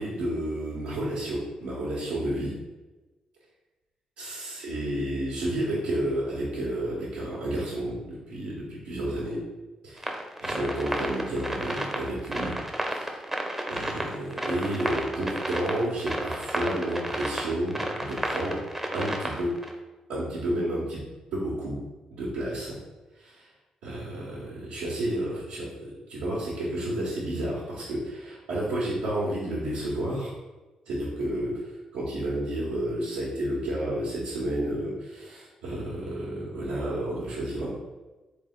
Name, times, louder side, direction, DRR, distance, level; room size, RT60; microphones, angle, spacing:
voice 1, 0.0-2.5 4.2-9.4 9.8-12.5 12.9-13.1 13.7-18.6 18.9-19.5 20.1-21.0 21.3-21.7 22.1-22.8 23.2-23.3 23.8-30.3 30.9-31.5 31.9-37.7, right 1 dB, 90° right, -8 dB, 1.1 m, -31 dB
sound 1, 10.0-19.7, right 1 dB, 10° right, 0.7 m, -32 dB
3.6 x 3.3 x 3.6 m, 1.1 s
supercardioid pair, 55°, 2 cm